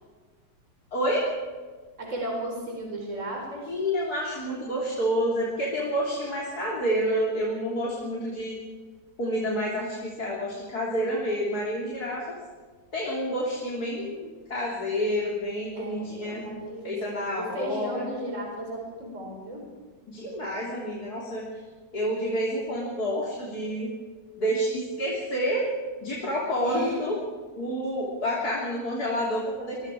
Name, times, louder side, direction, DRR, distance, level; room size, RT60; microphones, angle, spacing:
voice 1, 0.9-1.3 3.7-8.6 9.2-12.4 12.9-16.5 16.8-18.1 20.1-21.5 21.9-23.9 24.4-25.7 26.0-27.2 27.6-29.9, equal, 55° left, -4 dB, 4.0 m, -29 dB
voice 2, 2.0-3.8 15.8-17.0 17.5-19.6 26.6-27.0, right 1 dB, 40° right, -1 dB, 5.0 m, -35 dB
26.5 x 22.5 x 4.9 m, 1.5 s
omnidirectional pair, 1.9 m